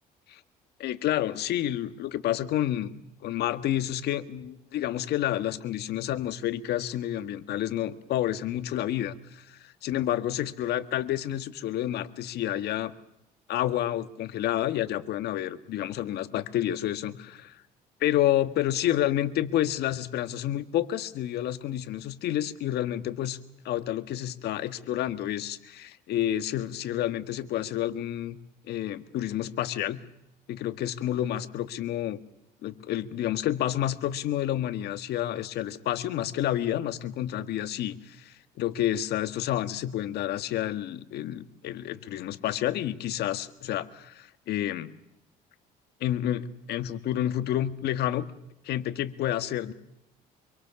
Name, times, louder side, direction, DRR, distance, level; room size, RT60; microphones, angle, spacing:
voice 1, 0.8-2.9 3.2-12.9 13.5-17.6 18.0-23.4 23.6-28.4 28.6-30.0 30.5-32.2 32.6-44.9 46.0-48.3 48.6-49.7, left 12 dB, 75° left, 11 dB, 1.7 m, -29 dB
26.0 x 23.5 x 7.1 m, 0.84 s
cardioid pair, 110°, 17 cm